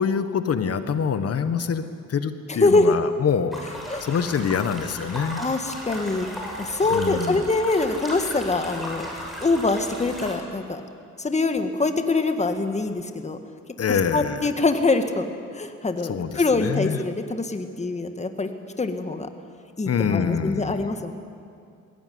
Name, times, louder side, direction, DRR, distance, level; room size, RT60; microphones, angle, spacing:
voice 1, 0.0-1.8 2.1-3.6 4.0-5.4 6.9-7.4 13.8-14.5 16.0-17.0 19.8-20.9, left 7 dB, 50° left, 10 dB, 1.5 m, -25 dB
voice 2, 2.6-2.9 3.9-4.0 5.4-6.3 6.6-9.1 9.4-10.8 11.2-13.4 14.1-18.5 18.8-19.3 19.8-21.1, left 3 dB, 20° left, 7 dB, 1.9 m, -24 dB
sound 1, 3.5-10.3, equal, ahead, 6.8 m, -36 dB
20.5 x 17.0 x 9.6 m, 2.4 s
cardioid pair, 90°, 30 cm